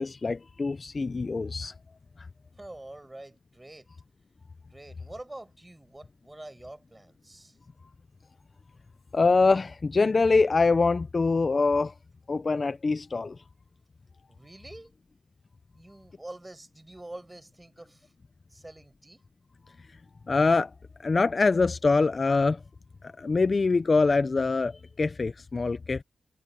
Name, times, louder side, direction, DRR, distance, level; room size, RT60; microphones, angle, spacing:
voice 1, 0.0-1.7 9.1-11.9 12.3-13.4 20.3-20.7 21.0-22.6 23.0-26.0, left 3 dB, 35° left, 0.4 m, -24 dB
voice 2, 2.6-3.9 4.7-7.6 14.3-14.9 15.7-18.1 18.5-19.2, right 1 dB, 15° right, 6.2 m, -46 dB
wide cardioid pair, 120°, 0 cm